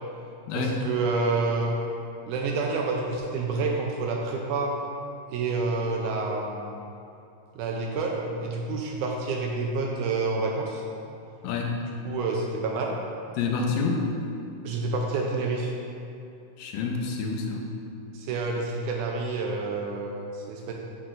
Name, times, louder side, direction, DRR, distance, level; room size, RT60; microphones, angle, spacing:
voice 1, 0.5-1.8 2.3-4.7 5.3-6.8 7.6-10.8 12.1-13.0 14.6-15.7 18.1-20.7, right 3 dB, 80° right, 0 dB, 1.9 m, -28 dB
voice 2, 11.4-11.8 13.4-14.1 16.6-17.7, left 4 dB, 90° left, 2 dB, 2.4 m, -28 dB
7.6 x 6.7 x 2.5 m, 2.7 s
omnidirectional pair, 3.9 m